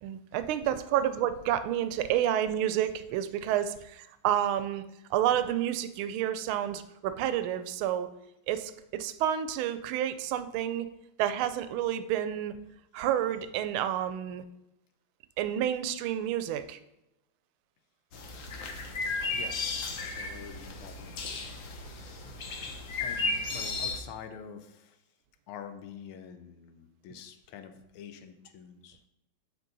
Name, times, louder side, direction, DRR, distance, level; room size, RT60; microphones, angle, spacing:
voice 1, 0.0-4.8 5.1-8.1 8.5-10.9 11.2-12.5 12.9-14.4 15.4-16.8, right 11 dB, 80° right, 12 dB, 1.4 m, -29 dB
sound 1, 18.1-24.0, left 3 dB, 65° left, 0.8 m, -34 dB
voice 2, 19.3-21.1 23.0-25.0 25.5-29.0, left 7 dB, 80° left, 8 dB, 1.6 m, -46 dB
8.3 x 4.3 x 3.9 m, 0.88 s
omnidirectional pair, 2.4 m